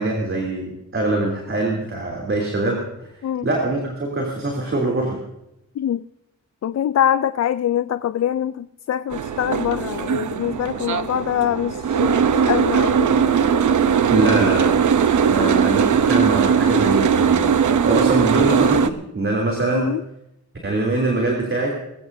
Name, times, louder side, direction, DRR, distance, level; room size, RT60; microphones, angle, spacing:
voice 1, 0.0-2.8 3.4-5.2 14.1-14.7 15.3-17.5 17.8-19.9 20.6-21.7, right 2 dB, 40° right, 3.2 m, -23 dB
voice 2, 5.8-6.1 6.6-13.2 15.4-15.6 19.7-20.0, left 10 dB, 60° left, 0.4 m, -24 dB
Boat Water vehicle, 9.1-18.9, right 7 dB, 75° right, 0.8 m, -19 dB
21.5 x 16.0 x 2.7 m
wide cardioid pair, 105°, 30 cm